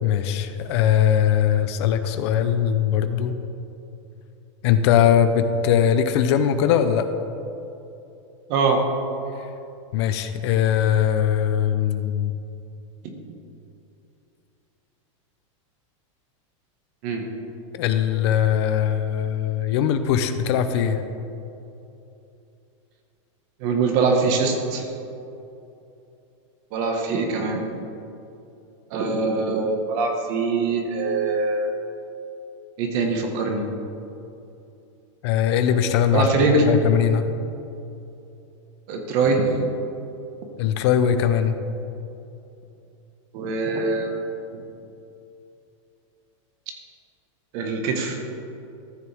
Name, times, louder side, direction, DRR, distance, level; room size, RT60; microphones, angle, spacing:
voice 1, 0.0-3.4 4.6-7.1 9.9-12.3 17.7-21.0 35.2-36.3 36.7-37.2 40.6-41.5, left 9 dB, 55° left, 9 dB, 0.7 m, -20 dB
voice 2, 8.5-8.8 17.0-17.2 23.6-24.9 26.7-27.6 28.9-31.7 32.8-33.7 36.1-36.6 38.9-39.5 43.3-44.1 44.5-44.6 47.5-48.2, right 3 dB, 45° right, 3 dB, 1.5 m, -23 dB
14.0 x 6.9 x 3.5 m, 2.8 s
supercardioid pair, 150°, 16 cm